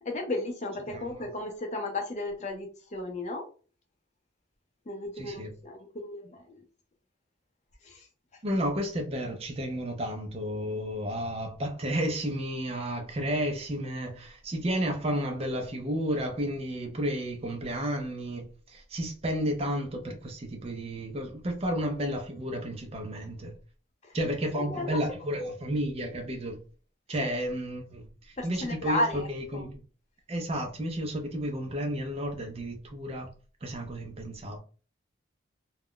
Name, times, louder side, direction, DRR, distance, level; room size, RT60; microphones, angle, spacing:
voice 1, 0.0-3.4 4.9-6.4 7.8-8.1 24.0-24.1 24.7-25.0 27.2-27.3 28.4-29.3 29.5-29.6, left 1 dB, 35° left, 0.5 m, -34 dB
voice 2, 0.9-1.3 5.2-5.5 8.4-23.5 24.1-26.6 27.1-29.8 30.3-33.3 33.6-34.6, equal, 30° right, 0.4 m, -32 dB
2.3 x 2.0 x 3.6 m
head